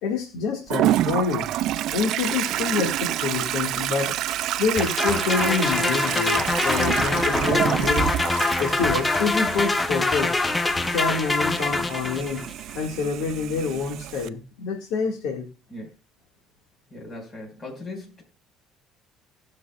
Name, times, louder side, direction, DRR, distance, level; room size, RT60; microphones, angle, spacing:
voice 1, 0.0-1.5 1.9-4.2 4.6-8.2 8.6-10.4 10.8-12.5 12.8-15.5, left 5 dB, 75° left, 2 dB, 1.7 m, -27 dB
Toilet flush, 0.7-14.3, right 13 dB, 65° right, 0.4 m, -28 dB
sound 1, 4.8-12.5, left 2 dB, 15° left, 0.6 m, -24 dB
voice 2, 16.9-18.2, left 2 dB, 30° left, 1 dB, 4.7 m, -38 dB
18.5 x 6.2 x 2.3 m, 0.32 s
cardioid pair, 100°, 0 cm